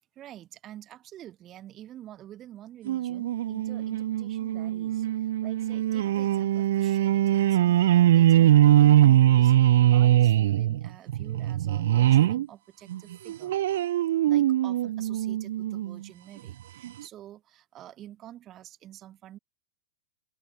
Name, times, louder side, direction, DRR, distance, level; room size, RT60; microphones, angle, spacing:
voice 1, 0.1-13.5 14.2-19.4, right 12 dB, 30° right, 2.6 m, -48 dB
sound 1, 2.9-12.5 12.9-16.0 16.5-16.6 16.8-16.9, right 13 dB, 60° right, 0.3 m, -22 dB
open air
figure-of-eight pair, 90°, 0 cm